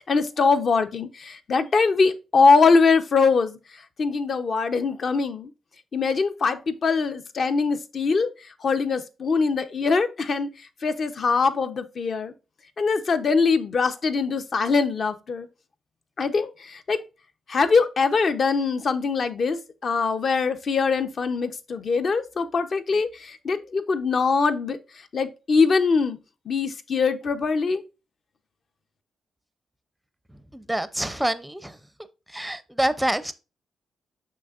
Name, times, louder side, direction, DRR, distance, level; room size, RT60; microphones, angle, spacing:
voice 1, 0.0-3.6 4.0-5.5 5.9-8.3 8.6-10.5 10.8-12.3 12.8-15.5 16.2-17.0 17.5-24.8 25.1-26.2 26.5-27.8, left 4 dB, 45° left, 0.7 m, -22 dB
voice 2, 30.5-31.8 32.3-33.3, right 1 dB, 5° right, 0.5 m, -26 dB
6.4 x 6.1 x 2.5 m
cardioid pair, 130°, 0 cm